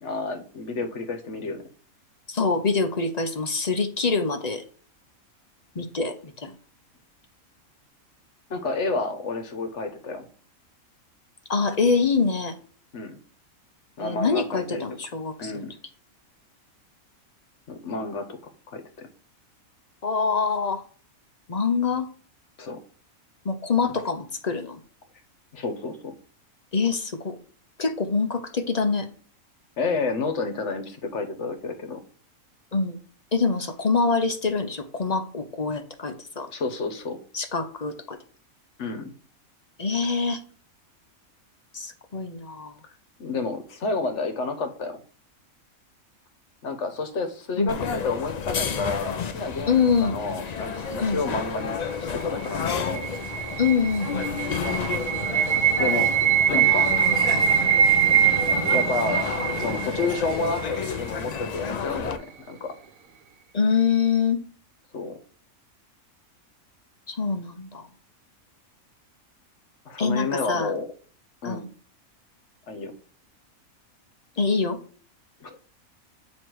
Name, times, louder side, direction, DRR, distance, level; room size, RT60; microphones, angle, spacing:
voice 1, 0.0-1.6 8.5-10.2 12.9-13.2 14.0-14.8 15.4-15.7 17.7-18.4 18.7-19.1 22.6-22.8 25.5-26.1 29.8-32.0 36.5-37.2 38.8-39.1 43.2-45.0 46.6-53.1 55.8-56.1 56.5-56.9 58.6-59.2 59.6-62.7 64.9-65.1 69.8-70.9 71.4-71.6 72.7-72.9 75.4-75.5, left 3 dB, 55° left, 7 dB, 1.4 m, -30 dB
voice 2, 2.3-4.6 5.8-6.5 11.5-12.5 14.0-15.6 20.0-20.8 21.5-22.1 23.4-24.8 26.7-27.3 27.8-29.1 32.7-33.0 33.3-36.5 37.3-38.2 39.8-40.4 41.7-42.7 47.6-47.7 49.7-50.2 51.0-51.2 53.6-54.3 63.5-64.4 67.1-67.8 70.0-70.7 71.4-71.7 74.4-74.8, left 5 dB, 40° left, 7 dB, 0.7 m, -25 dB
sound 1, 47.7-62.2, left 6 dB, 90° left, 0.3 m, -31 dB
sound 2, 52.2-61.2, right 9 dB, 75° right, 1.2 m, -23 dB
9.2 x 3.2 x 4.6 m, 0.43 s
omnidirectional pair, 1.5 m